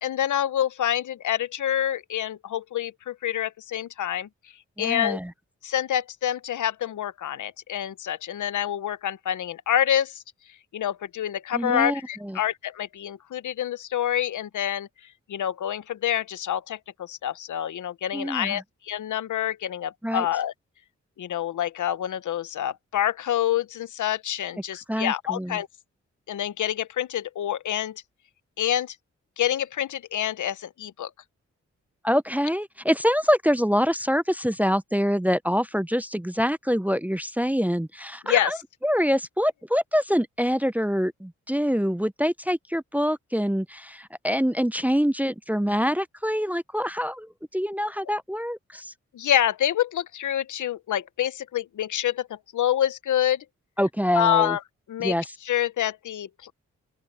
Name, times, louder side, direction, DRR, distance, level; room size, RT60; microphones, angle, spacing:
voice 1, 0.0-4.3 4.8-5.2 5.6-10.2 10.7-14.9 15.3-20.5 21.2-25.7 26.3-28.0 28.6-28.9 29.4-31.1 38.2-38.6 49.1-53.4 54.1-54.6 54.9-55.1 55.4-56.5, left 11 dB, 80° left, 0.9 m, -27 dB
voice 2, 4.8-5.3 11.5-12.4 18.1-18.6 20.0-20.3 24.9-25.6 32.0-38.6 38.8-48.9 53.8-54.6 55.0-55.2, equal, 5° right, 0.6 m, -25 dB
open air
cardioid pair, 50°, 30 cm